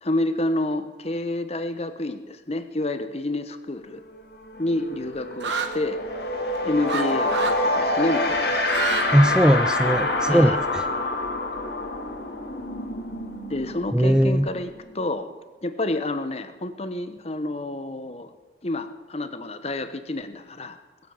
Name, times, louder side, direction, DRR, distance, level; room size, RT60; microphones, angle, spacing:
voice 1, 0.0-4.0 4.6-6.0 6.6-8.6 10.2-10.6 13.5-15.3 15.6-18.3 18.6-20.8, left 2 dB, 35° left, 10 dB, 1.0 m, -29 dB
sound 1, 4.0-4.2 4.5-15.0, left 2 dB, 65° left, 2.2 m, -27 dB
sound 2, 5.4-5.7 6.9-7.0 7.3-7.6 8.5-9.1 9.4-10.1, right 6 dB, 85° right, 1.4 m, -28 dB
voice 2, 9.1-10.8 13.9-14.5, equal, 5° right, 10 dB, 0.4 m, -19 dB
21.5 x 8.2 x 7.3 m, 1.3 s
head